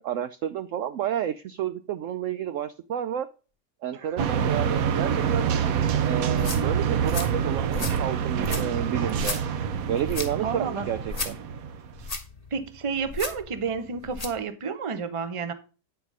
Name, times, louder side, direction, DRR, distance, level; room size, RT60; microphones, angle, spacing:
voice 1, 0.0-3.3 3.8-5.6 6.1-9.4 9.9-11.4, right 10 dB, 85° right, 0.6 m, -30 dB
voice 2, 3.9-4.5 10.4-10.9 12.5-15.5, right 5 dB, 45° right, 0.4 m, -31 dB
sound 1, 4.2-12.1, right 8 dB, 65° right, 1.0 m, -26 dB
sound 2, 6.2-14.4, left 3 dB, 25° left, 1.2 m, -36 dB
9.4 x 4.1 x 6.0 m
omnidirectional pair, 1.9 m